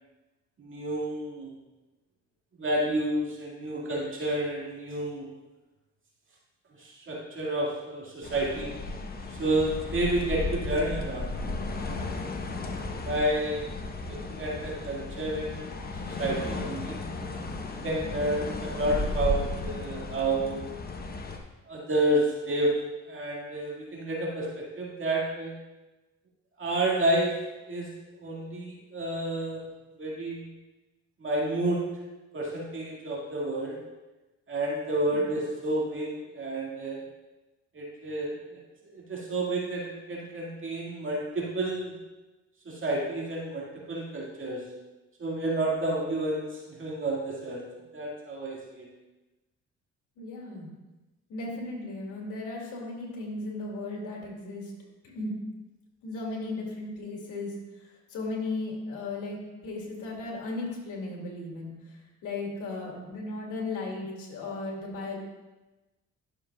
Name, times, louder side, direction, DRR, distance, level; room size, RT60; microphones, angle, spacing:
voice 1, 0.6-1.5 2.6-5.3 6.8-8.7 9.3-11.3 11.8-12.3 13.0-13.7 14.3-15.7 16.0-17.0 17.7-20.6 21.7-22.7 23.1-25.6 26.6-27.4 27.7-27.9 28.2-29.6 30.0-30.5 31.2-31.8 32.3-33.8 34.5-37.0 37.7-38.6 38.9-42.0 42.7-44.6 45.2-47.7 47.9-48.9, right 1 dB, 40° right, -4 dB, 2.0 m, -30 dB
sound 1, 8.2-21.4, left 2 dB, 30° left, 1.0 m, -35 dB
voice 2, 50.2-50.7 51.3-54.7 55.1-55.4 56.0-61.7 62.2-65.2, left 2 dB, 80° left, -2 dB, 2.6 m, -36 dB
11.5 x 6.9 x 2.3 m, 1.1 s
cardioid pair, 90°, 30 cm